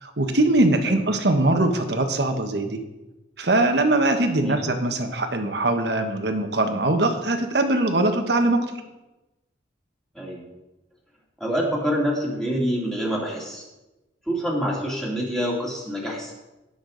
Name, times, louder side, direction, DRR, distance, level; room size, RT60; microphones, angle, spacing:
voice 1, 0.0-2.8 3.4-8.7, right 2 dB, 65° right, 6 dB, 1.3 m, -22 dB
voice 2, 11.4-13.6 14.3-16.3, equal, 5° left, -4 dB, 2.8 m, -26 dB
17.0 x 6.8 x 4.0 m, 1.0 s
head